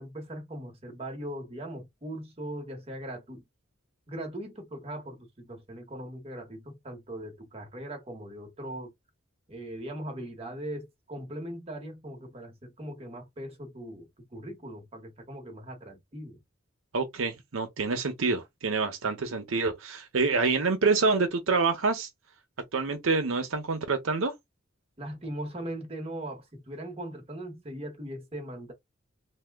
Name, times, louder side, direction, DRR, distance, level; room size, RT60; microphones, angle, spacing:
voice 1, 0.0-3.4 4.1-8.9 9.5-16.4 25.0-28.7, right 1 dB, 30° right, 1.0 m, -40 dB
voice 2, 16.9-22.1 22.7-24.3, right 4 dB, 75° right, 0.7 m, -27 dB
2.7 x 2.2 x 3.4 m
head